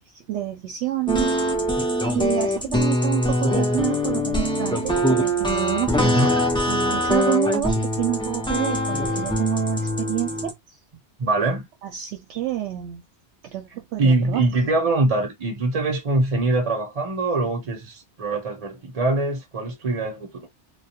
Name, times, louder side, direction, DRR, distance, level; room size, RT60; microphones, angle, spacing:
voice 1, 0.0-1.4 2.1-6.3 6.7-10.5 11.8-13.0 13.4-14.4, right 14 dB, 80° right, 0.9 m, -28 dB
sound 1, 1.1-10.5, equal, 5° left, 0.3 m, -23 dB
voice 2, 6.0-6.4 11.2-11.7 14.0-20.5, right 2 dB, 35° right, 0.7 m, -23 dB
2.3 x 2.2 x 2.7 m
omnidirectional pair, 1.2 m